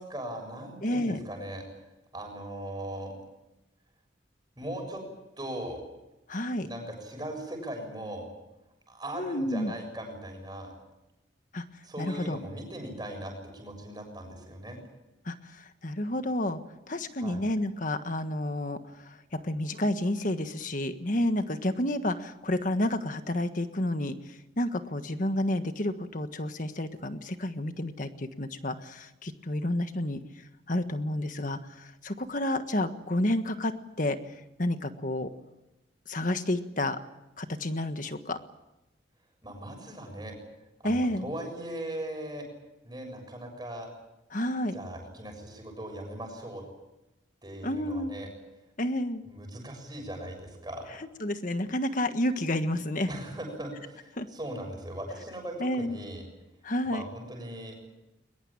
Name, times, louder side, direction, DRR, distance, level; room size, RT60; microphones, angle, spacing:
voice 1, 0.0-1.6 2.1-3.1 4.6-5.0 5.4-5.8 6.6-8.3 8.9-10.7 11.8-14.8 17.2-17.4 39.4-40.4 40.8-42.5 42.8-43.9 44.7-46.6 47.4-48.3 49.2-50.9 53.1-56.2 56.8-57.8, right 1 dB, 20° right, 3 dB, 6.9 m, -39 dB
voice 2, 0.8-1.2 6.3-6.7 9.1-9.7 11.5-11.6 12.0-12.4 15.3-15.4 15.8-16.6 16.9-18.8 19.3-24.2 24.6-30.2 30.7-33.7 34.0-34.2 34.6-35.3 36.1-37.0 37.4-38.4 40.8-41.3 44.3-44.8 47.6-48.1 48.8-49.2 51.2-53.1 54.2-54.3 55.6-56.0 56.6-57.0, left 1 dB, 45° left, 9 dB, 1.5 m, -30 dB
22.0 x 21.5 x 8.8 m, 0.96 s
head